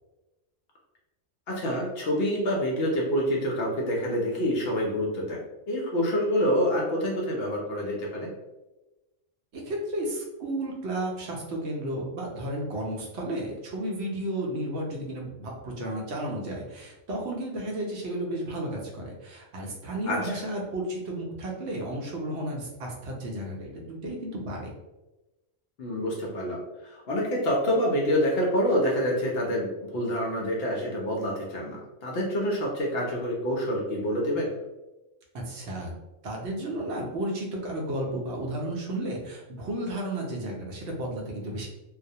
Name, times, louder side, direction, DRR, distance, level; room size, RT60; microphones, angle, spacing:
voice 1, 1.5-5.4 5.7-8.3 20.1-20.4 25.8-34.5, equal, 65° left, -2 dB, 0.7 m, -27 dB
voice 2, 9.5-24.7 35.4-35.9 36.2-41.7, right 1 dB, 70° right, -1 dB, 0.8 m, -33 dB
2.3 x 2.0 x 2.6 m, 1.1 s
omnidirectional pair, 1.3 m